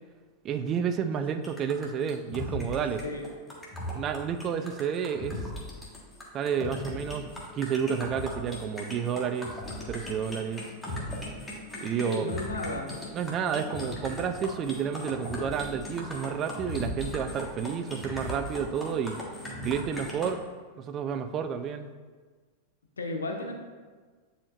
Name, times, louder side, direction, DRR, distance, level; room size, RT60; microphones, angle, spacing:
voice 1, 0.4-3.0 3.9-5.4 6.3-9.6 9.9-10.7 11.8-12.3 13.1-19.2 19.6-20.4 20.8-21.9, right 7 dB, 30° right, 10 dB, 0.4 m, -30 dB
sound 1, 1.4-20.3, left 1 dB, 10° left, 1.4 m, -38 dB
voice 2, 12.0-13.0 23.0-23.5, left 2 dB, 75° left, 2 dB, 0.9 m, -33 dB
9.7 x 4.3 x 2.5 m, 1.4 s
figure-of-eight pair, 90°, 0 cm